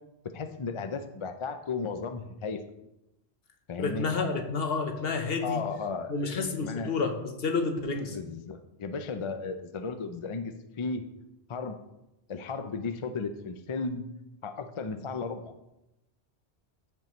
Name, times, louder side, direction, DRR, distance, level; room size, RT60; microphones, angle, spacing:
voice 1, 0.3-2.6 3.7-4.1 5.4-6.9 8.1-11.0 11.5-11.8 12.3-14.0 14.4-15.5, left 4 dB, 40° left, 8 dB, 0.4 m, -35 dB
voice 2, 3.8-5.6 6.1-8.2, left 4 dB, 65° left, 5 dB, 1.1 m, -30 dB
13.5 x 5.4 x 3.1 m, 0.91 s
omnidirectional pair, 1.1 m